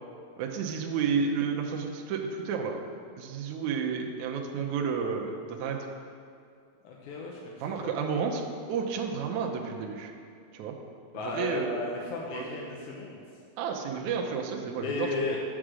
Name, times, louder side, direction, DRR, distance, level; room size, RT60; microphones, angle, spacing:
voice 1, 0.4-2.8 3.2-5.8 7.6-8.4 8.7-10.1 10.5-10.8 11.2-11.9 12.3-12.4 13.6-15.1, right 6 dB, 85° right, 1 dB, 1.6 m, -31 dB
voice 2, 6.8-7.9 11.1-13.2 14.8-15.4, left 3 dB, 75° left, -2 dB, 1.9 m, -35 dB
8.5 x 5.0 x 6.2 m, 2.3 s
omnidirectional pair, 4.4 m